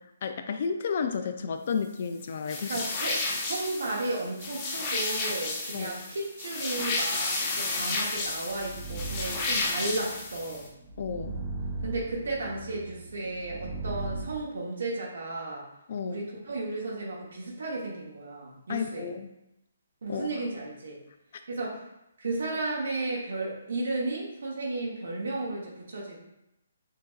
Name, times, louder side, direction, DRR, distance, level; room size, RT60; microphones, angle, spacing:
voice 1, 0.0-2.8 5.7-6.0 11.0-11.4 15.9-16.3 18.7-19.3 20.1-20.3, left 6 dB, 50° left, 7 dB, 0.3 m, -32 dB
sound 1, 2.5-10.7, left 3 dB, 25° left, 0.7 m, -32 dB
voice 2, 2.7-10.7 11.8-15.6 16.0-19.1 20.0-21.0 21.5-21.8 22.2-26.2, right 2 dB, 75° right, -3 dB, 0.9 m, -34 dB
sound 2, 8.0-14.3, right 3 dB, 10° right, 0.6 m, -38 dB
5.7 x 2.6 x 2.4 m, 0.87 s
hypercardioid pair, 155°, 0 cm